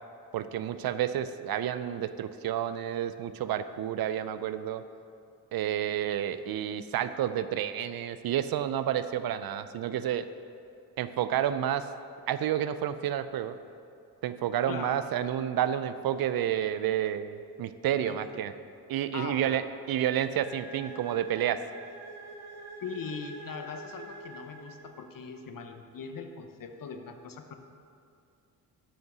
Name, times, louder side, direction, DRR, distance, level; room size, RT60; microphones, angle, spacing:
voice 1, 0.3-4.8 5.5-10.3 11.0-11.9 12.3-13.6 14.2-18.5 18.9-21.6, right 10 dB, 55° right, 12 dB, 0.6 m, -30 dB
voice 2, 14.7-15.0 17.9-18.4 19.1-19.6 22.8-27.5, left 5 dB, 45° left, 6 dB, 1.0 m, -41 dB
sound 1, 20.3-25.2, right 2 dB, 85° right, 1.0 m, -46 dB
7.4 x 5.6 x 6.1 m, 2.5 s
hypercardioid pair, 50°, 45 cm